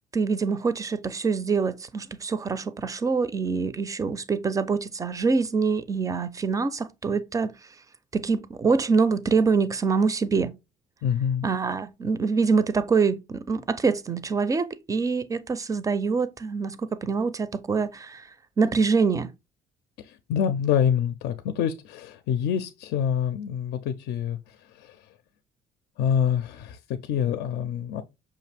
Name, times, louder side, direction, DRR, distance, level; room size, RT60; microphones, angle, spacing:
voice 1, 0.1-7.5 8.1-10.5 11.4-18.3 18.6-19.3, right 4 dB, 20° right, 0.4 m, -25 dB
voice 2, 11.0-11.5 20.0-25.1 26.0-28.0, left 8 dB, 75° left, 0.4 m, -26 dB
5.7 x 2.5 x 3.3 m
cardioid pair, 110°, 17 cm